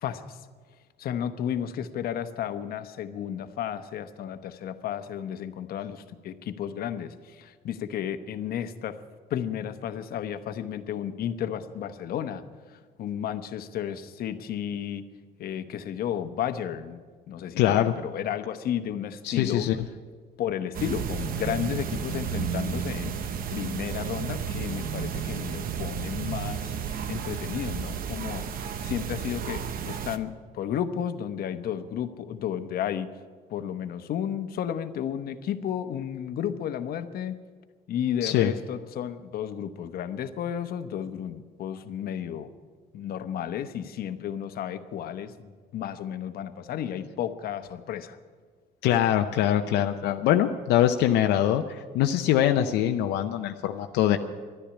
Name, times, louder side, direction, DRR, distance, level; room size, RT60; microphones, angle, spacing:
voice 1, 0.0-0.4 1.0-9.0 9.3-15.0 15.4-19.7 20.4-23.2 23.5-28.5 28.8-33.1 33.5-37.4 37.9-42.5 42.9-48.2, left 9 dB, 60° left, 9 dB, 1.0 m, -33 dB
voice 2, 17.6-17.9 19.2-19.8 38.2-38.5 48.8-54.2, left 11 dB, 85° left, 5 dB, 0.7 m, -23 dB
sound 1, 20.7-30.2, right 7 dB, 60° right, 0.9 m, -32 dB
12.0 x 10.5 x 9.8 m, 1.5 s
cardioid pair, 110°, 17 cm